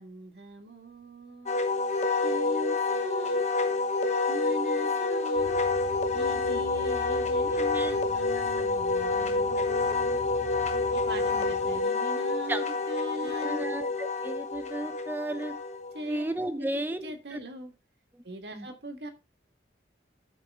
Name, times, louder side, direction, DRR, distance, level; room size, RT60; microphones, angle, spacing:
voice 1, 0.0-1.6 2.2-3.7 4.3-5.6 6.1-10.2 10.9-13.7 15.9-16.2 16.6-17.7 18.2-19.1, equal, 70° right, 5 dB, 1.8 m, -40 dB
Wind instrument woodwind instrument, 1.5-16.1, left 3 dB, 40° left, 1.1 m, -28 dB
sound 1, 5.4-11.8, left 2 dB, 65° left, 1.7 m, -45 dB
voice 2, 6.1-6.6 7.7-7.9 9.7-9.8 10.7-10.8 12.5-12.6 13.2-15.5 16.1-17.4 18.1-18.2 18.5-18.7, right 1 dB, 10° right, 10 dB, 0.7 m, -35 dB
14.0 x 4.7 x 3.6 m, 0.26 s
head